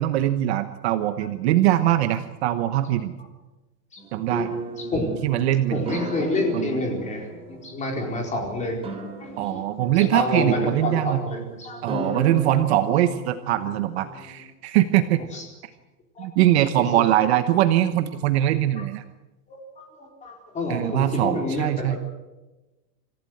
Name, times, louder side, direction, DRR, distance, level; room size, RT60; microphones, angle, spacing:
voice 1, 0.0-3.1 4.1-4.5 5.2-5.8 6.5-6.8 9.4-11.2 11.8-15.2 16.2-19.0 20.7-22.0, right 13 dB, 40° right, 10 dB, 1.1 m, -22 dB
sound 1, 4.0-14.5, right 2 dB, 10° right, 3.4 m, -35 dB
voice 2, 4.8-5.1 5.5-8.8 9.2-12.0 15.3-15.4 16.2-16.3 16.8-16.9 19.5-22.0, left 2 dB, 15° left, 1 dB, 4.5 m, -29 dB
27.0 x 15.0 x 7.8 m, 1.1 s
supercardioid pair, 165°, 48 cm